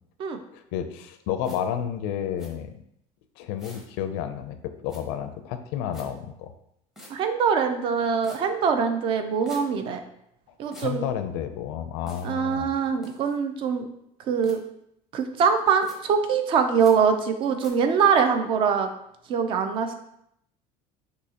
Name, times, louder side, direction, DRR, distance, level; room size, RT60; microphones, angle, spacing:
voice 1, 0.5-2.7 3.4-6.5 10.7-12.7, left 9 dB, 90° left, 9 dB, 0.5 m, -31 dB
sound 1, 1.4-1.6 2.4-2.5 3.6-3.9 4.9-5.0 5.9-6.1 6.9-7.1 8.2-8.4 9.4-9.6 10.7-10.9 12.1-12.3 13.0-13.4 14.4-14.6 15.8-16.0 16.8-16.9 17.6-17.7, equal, 5° right, 0.7 m, -45 dB
voice 2, 7.1-10.0 10.6-11.0 12.2-13.9 14.3-14.6 15.1-18.9 19.3-19.9, right 6 dB, 35° right, 7 dB, 0.5 m, -23 dB
6.2 x 2.8 x 2.9 m, 0.76 s
cardioid pair, 170°, 14 cm